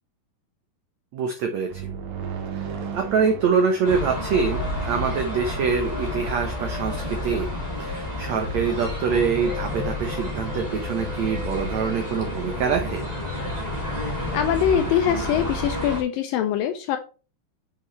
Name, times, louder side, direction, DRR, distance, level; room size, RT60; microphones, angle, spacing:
voice 1, 1.1-1.9 2.9-7.5 7.8-13.1, right 6 dB, 85° right, 4 dB, 1.5 m, -25 dB
sound 1, 1.7-5.4, right 7 dB, 70° right, 2.8 m, -36 dB
sound 2, 3.8-16.0, left 1 dB, 30° right, 0.7 m, -30 dB
voice 2, 14.3-17.0, left 9 dB, 80° left, 8 dB, 2.1 m, -23 dB
7.7 x 5.6 x 3.1 m, 0.34 s
omnidirectional pair, 4.5 m